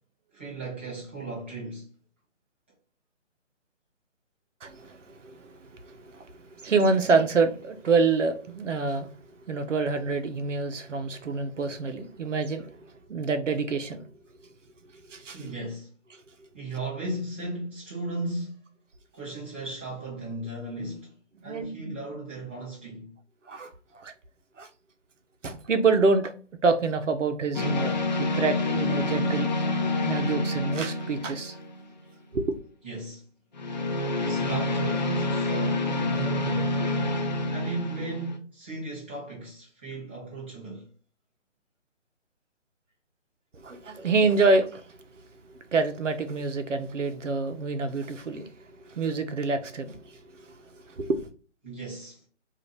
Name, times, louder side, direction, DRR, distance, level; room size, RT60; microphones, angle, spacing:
voice 1, 0.3-1.9 15.3-15.9 16.5-18.7 19.1-21.1 21.4-23.2 32.8-33.3 34.1-36.8 37.5-40.9 51.6-52.2, right 2 dB, 10° right, 0.5 m, -36 dB
voice 2, 4.6-9.1 9.5-12.7 13.1-14.0 15.1-15.5 21.5-22.0 23.5-24.1 24.6-24.7 25.4-26.3 26.6-29.5 30.0-31.6 32.3-32.6 43.5-45.2 45.7-48.6 48.8-50.6 50.9-51.3, right 4 dB, 85° right, 0.7 m, -27 dB
sound 1, 27.5-32.0 33.5-38.4, left 2 dB, 40° left, 0.5 m, -28 dB
3.9 x 2.4 x 3.0 m
figure-of-eight pair, 145°, 37 cm